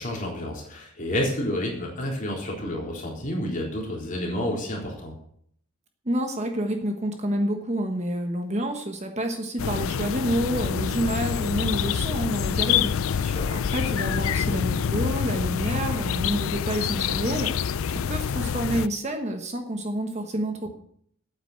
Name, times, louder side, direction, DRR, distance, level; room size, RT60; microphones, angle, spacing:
voice 1, 0.0-5.1 13.2-13.6, left 1 dB, 35° left, -2 dB, 3.8 m, -30 dB
voice 2, 6.0-20.7, right 1 dB, 30° right, 5 dB, 1.3 m, -29 dB
sound 1, 9.6-18.9, left 7 dB, 65° left, 0.4 m, -26 dB
9.1 x 9.0 x 8.0 m, 0.66 s
head